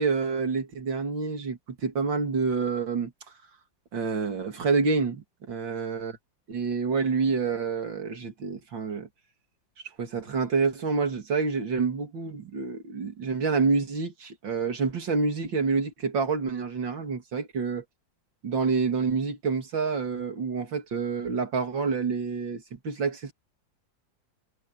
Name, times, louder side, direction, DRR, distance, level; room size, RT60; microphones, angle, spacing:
voice 1, 0.0-3.1 3.9-6.1 6.5-9.1 10.0-17.8 18.4-23.3, right 4 dB, 75° right, 3.3 m, -28 dB
omnidirectional pair, 2.0 m